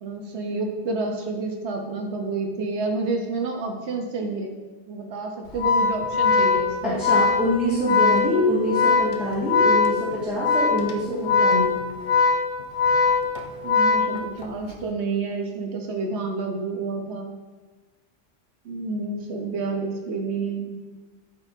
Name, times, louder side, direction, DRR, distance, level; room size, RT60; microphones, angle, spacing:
voice 1, 0.0-4.6 4.9-7.0 13.6-17.4 18.6-20.8, right 3 dB, 65° right, 2 dB, 1.1 m, -29 dB
Organ, 5.5-14.7, left 4 dB, 50° left, 0.7 m, -21 dB
voice 2, 6.8-11.8, left 1 dB, ahead, -11 dB, 1.8 m, -25 dB
11.5 x 4.4 x 2.7 m, 1.3 s
omnidirectional pair, 1.2 m